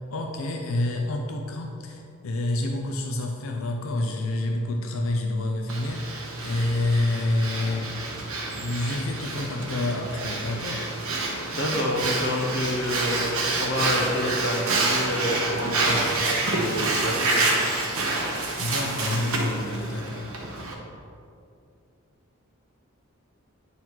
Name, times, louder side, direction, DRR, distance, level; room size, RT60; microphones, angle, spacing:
voice 1, 0.1-8.1 8.5-10.9 18.6-20.3, left 2 dB, 70° left, 2 dB, 0.6 m, -28 dB
Breathing, 5.7-20.7, right 2 dB, 75° right, 1.2 m, -28 dB
voice 2, 11.5-17.5, left 1 dB, 55° left, 0 dB, 1.1 m, -28 dB
9.0 x 4.1 x 4.5 m, 2.6 s
head